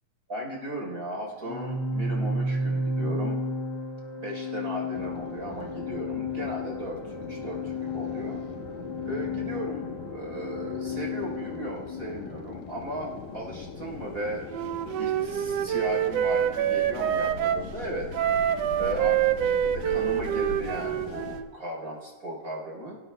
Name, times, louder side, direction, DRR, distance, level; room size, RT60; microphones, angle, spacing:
voice 1, 0.3-3.4 4.2-7.0 7.3-8.7 9.0-14.5 15.0-18.1 18.8-23.0, right 1 dB, 30° right, -1 dB, 4.1 m, -36 dB
Organ, 1.4-12.2, left 2 dB, 50° left, 2.1 m, -32 dB
sound 1, 4.9-21.4, left 6 dB, 80° left, 2.6 m, -41 dB
Wind instrument woodwind instrument, 14.5-17.7 18.1-21.5, right 10 dB, 85° right, 1.4 m, -26 dB
29.5 x 16.5 x 2.2 m, 1.5 s
omnidirectional pair, 3.6 m